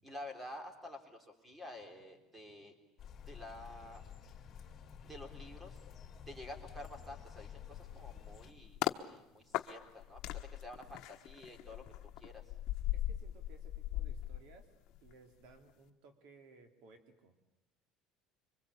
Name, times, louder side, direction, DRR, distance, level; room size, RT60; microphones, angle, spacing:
voice 1, 0.0-2.7 3.3-4.0 5.0-5.8 6.3-10.2 10.6-11.8 12.2-12.4, left 1 dB, 10° right, 5 dB, 3.8 m, -50 dB
sound 1, 3.0-8.5, left 8 dB, 30° left, 4.1 m, -51 dB
sound 2, 7.7-9.0 9.5-15.1 15.4-15.7, left 14 dB, 60° left, 1.2 m, -39 dB
voice 2, 12.9-14.7 15.0-17.3, right 4 dB, 75° right, 6 dB, 3.1 m, -60 dB
26.0 x 24.5 x 8.5 m, 0.92 s
cardioid pair, 145°, 0 cm